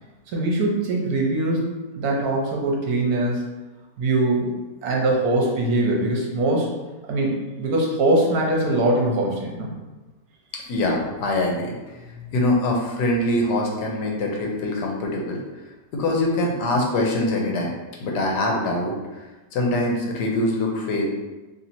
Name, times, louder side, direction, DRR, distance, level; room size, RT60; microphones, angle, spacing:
voice 1, 0.3-3.5 4.0-4.5 4.8-6.7 7.1-9.7 12.1-12.2, right 2 dB, 65° right, -1 dB, 1.2 m, -22 dB
voice 2, 10.7-11.8 12.3-15.4 15.9-17.7 18.0-19.2 19.5-21.1, left 1 dB, 80° left, -1 dB, 1.3 m, -23 dB
3.1 x 2.8 x 4.1 m, 1.1 s
omnidirectional pair, 1.8 m